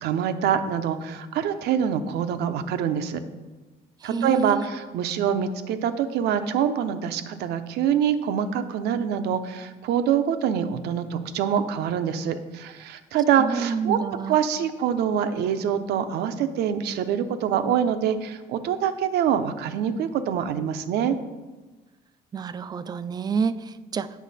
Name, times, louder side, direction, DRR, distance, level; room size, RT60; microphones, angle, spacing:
voice 1, 0.0-3.2 4.0-14.0 14.3-21.2, right 8 dB, 80° right, 10 dB, 0.6 m, -25 dB
voice 2, 4.0-4.7 13.4-14.4 22.3-24.2, right 5 dB, 25° right, 14 dB, 0.3 m, -28 dB
8.3 x 5.8 x 4.1 m, 1.2 s
cardioid pair, 110°, 17 cm